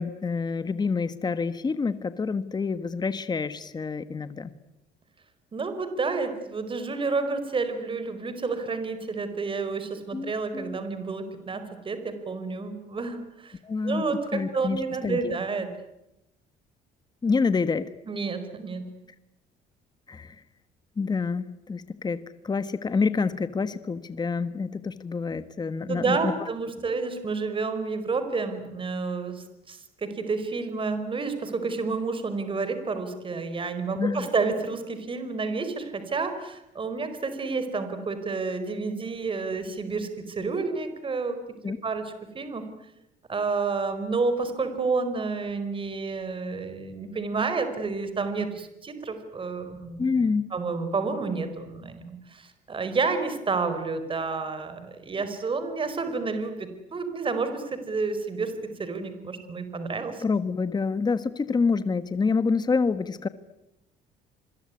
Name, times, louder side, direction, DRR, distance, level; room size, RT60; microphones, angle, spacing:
voice 1, 0.0-4.5 10.1-10.8 13.6-14.1 14.3-15.3 17.2-17.9 20.1-20.4 21.0-22.2 22.4-26.3 34.0-34.3 41.6-41.8 50.0-50.5 60.2-63.3, left 4 dB, 25° left, 12 dB, 1.4 m, -27 dB
voice 2, 5.5-13.6 13.8-15.7 18.1-18.9 25.9-41.4 41.8-42.6 43.3-50.1 50.5-58.5 58.8-60.2, right 4 dB, 30° right, 9 dB, 4.7 m, -30 dB
27.5 x 22.0 x 9.7 m, 0.89 s
cardioid pair, 110°, 17 cm